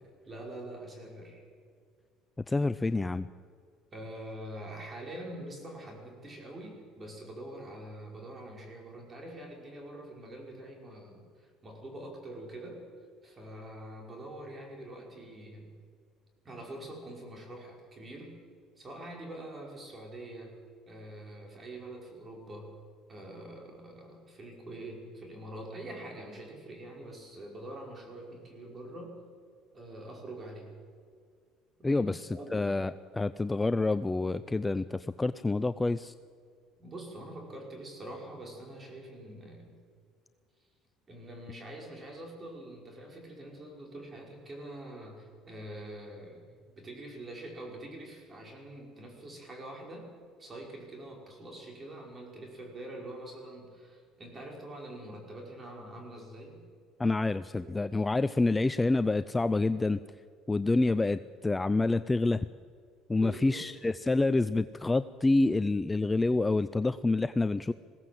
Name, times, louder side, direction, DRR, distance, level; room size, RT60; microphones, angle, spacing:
voice 1, 0.3-1.4 3.9-12.9 13.2-15.7 16.4-18.4 18.8-20.6 20.8-22.7 23.1-29.2 29.7-30.8 31.8-32.7 36.8-39.8 41.1-50.1 50.4-56.6 57.5-57.7 63.1-63.8, right 1 dB, 25° right, 1 dB, 5.1 m, -45 dB
voice 2, 2.5-3.3 31.8-36.1 57.0-60.0 60.5-62.5 63.1-67.7, left 2 dB, 15° left, 13 dB, 0.4 m, -27 dB
21.0 x 16.5 x 7.7 m, 2.1 s
cardioid pair, 115°, 0 cm